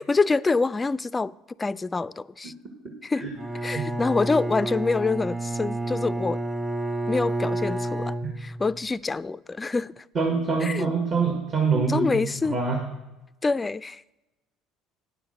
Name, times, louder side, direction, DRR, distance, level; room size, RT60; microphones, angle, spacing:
voice 1, 0.0-1.3 1.6-2.5 3.0-3.3 3.6-6.4 7.1-10.0 10.6-10.9 11.9-12.6 13.4-14.0, left 3 dB, 20° left, 0.3 m, -26 dB
Bowed string instrument, 3.4-8.8, right 2 dB, 15° right, 1.1 m, -30 dB
voice 2, 10.1-12.8, right 4 dB, 45° right, 1.7 m, -25 dB
9.6 x 6.7 x 6.5 m
hypercardioid pair, 70°, 0 cm